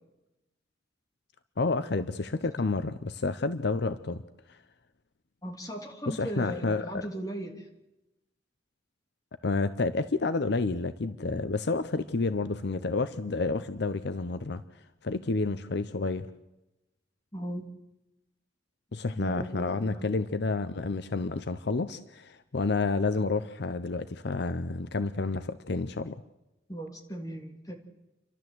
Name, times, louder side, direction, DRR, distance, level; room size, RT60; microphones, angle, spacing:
voice 1, 1.6-4.2 4.5-4.6 6.1-7.1 9.4-14.6 15.0-16.3 18.9-26.1, left 3 dB, 65° left, 12 dB, 0.7 m, -30 dB
voice 2, 5.4-7.6 17.3-17.6 19.1-20.2 26.7-27.7, right 1 dB, 20° left, 2 dB, 3.1 m, -37 dB
30.0 x 12.5 x 8.0 m, 0.97 s
head